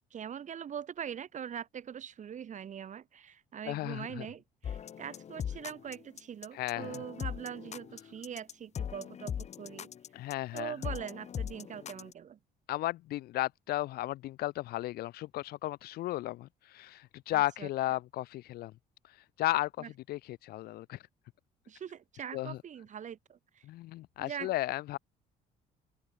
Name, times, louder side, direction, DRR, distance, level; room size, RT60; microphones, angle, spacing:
voice 1, 0.1-9.9 10.5-12.4 17.3-17.7 19.8-19.9 21.7-23.6 24.2-24.5, right 8 dB, 45° right, 3.0 m, -42 dB
voice 2, 3.6-4.3 6.5-7.0 10.1-10.8 12.7-18.7 19.4-21.0 22.3-22.6 23.6-25.0, left 16 dB, 65° left, 0.5 m, -34 dB
sound 1, 4.6-12.1, left 8 dB, 40° left, 1.1 m, -40 dB
cardioid pair, 110°, 17 cm